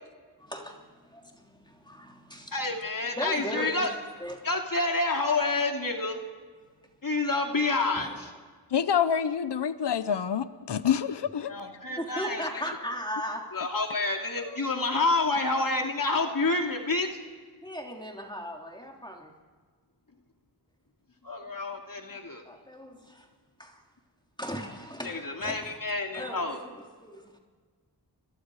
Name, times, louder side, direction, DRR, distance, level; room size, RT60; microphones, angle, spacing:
voice 1, 0.4-2.6 3.2-3.9 4.2-4.5 7.9-8.1 12.0-13.7 14.4-14.6 17.6-19.3 22.4-23.3 23.6-23.8 24.4-25.8 26.1-27.4, equal, 10° left, 1 dB, 3.2 m, -38 dB
voice 2, 2.5-3.9 4.4-6.2 7.0-8.3 11.5-12.5 13.5-17.1 21.2-22.4 25.0-26.6, left 3 dB, 55° left, 2 dB, 2.6 m, -28 dB
voice 3, 8.7-11.5, left 8 dB, 75° left, 12 dB, 0.9 m, -27 dB
30.0 x 22.5 x 4.9 m, 1.5 s
cardioid pair, 50°, 41 cm